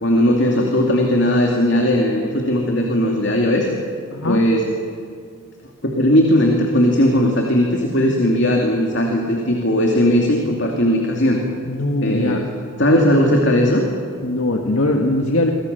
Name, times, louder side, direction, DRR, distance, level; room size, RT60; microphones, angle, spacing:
voice 1, 0.0-3.7 4.2-4.7 5.8-11.4 12.0-12.4 12.8-13.8, left 1 dB, 55° left, 1 dB, 2.8 m, -17 dB
voice 2, 4.1-4.4 11.7-12.4 14.2-15.5, left 1 dB, 80° left, 2 dB, 1.9 m, -20 dB
28.5 x 24.0 x 7.0 m, 2.3 s
head